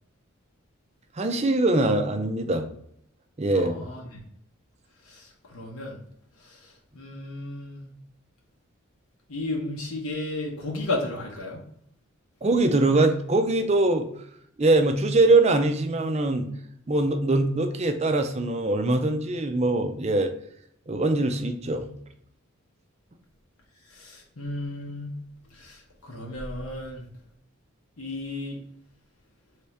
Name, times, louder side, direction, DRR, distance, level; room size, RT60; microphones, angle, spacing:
voice 1, 1.2-2.7 3.4-3.7 12.4-14.1 14.6-16.5 16.9-20.3 20.9-21.9, right 2 dB, 30° right, 6 dB, 0.5 m, -22 dB
voice 2, 3.5-4.2 5.0-6.0 6.4-7.9 9.3-11.6 23.9-25.2 25.5-27.0 28.0-28.6, left 2 dB, 80° left, -2 dB, 1.0 m, -34 dB
3.7 x 3.4 x 4.1 m, 0.70 s
head